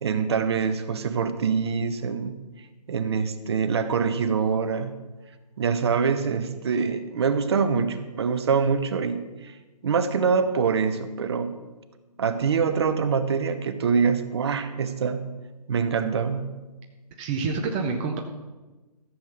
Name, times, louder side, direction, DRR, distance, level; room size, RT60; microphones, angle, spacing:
voice 1, 0.0-2.3 2.9-4.9 5.6-9.5 9.8-11.6 12.2-15.2 15.7-16.4, right 6 dB, 40° right, 10 dB, 1.0 m, -24 dB
voice 2, 17.2-18.2, right 4 dB, 15° right, 2 dB, 0.7 m, -27 dB
14.5 x 7.7 x 6.5 m, 1.2 s
hypercardioid pair, 155°, 21 cm